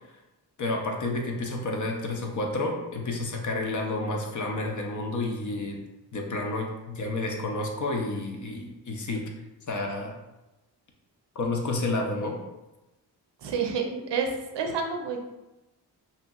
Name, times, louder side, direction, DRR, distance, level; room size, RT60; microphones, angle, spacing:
voice 1, 0.6-5.8 6.1-9.2 9.7-10.1 11.4-12.4, left 2 dB, 45° left, 2 dB, 0.5 m, -30 dB
voice 2, 13.4-15.2, right 5 dB, 70° right, 3 dB, 0.6 m, -29 dB
2.8 x 2.7 x 2.3 m, 1.0 s
cardioid pair, 80°, 43 cm